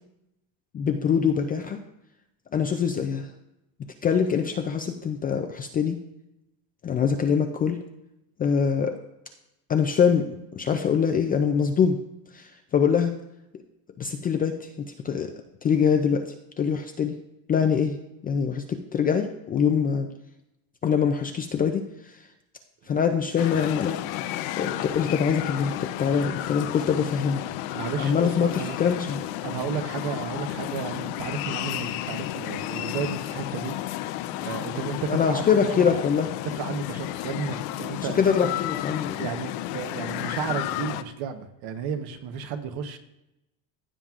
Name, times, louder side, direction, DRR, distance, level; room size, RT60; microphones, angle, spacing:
voice 1, 0.7-1.8 2.5-3.3 4.0-6.0 6.8-7.8 8.4-8.9 9.7-12.0 12.3-12.5 12.7-13.1 14.0-14.7 15.0-15.3 15.6-16.2 16.6-17.2 17.5-20.1 20.8-21.8 22.9-24.0 24.6-27.4 28.0-29.2 35.1-36.3 38.0-39.3, left 7 dB, 25° left, 5 dB, 0.3 m, -24 dB
sound 1, 23.4-41.0, left 14 dB, 85° left, 0.6 m, -32 dB
voice 2, 27.7-28.8 29.4-33.7 34.4-35.4 35.8-35.9 36.6-38.2 39.2-43.0, right 6 dB, 60° right, 7 dB, 1.1 m, -33 dB
15.0 x 7.4 x 2.4 m, 0.89 s
cardioid pair, 145°, 43 cm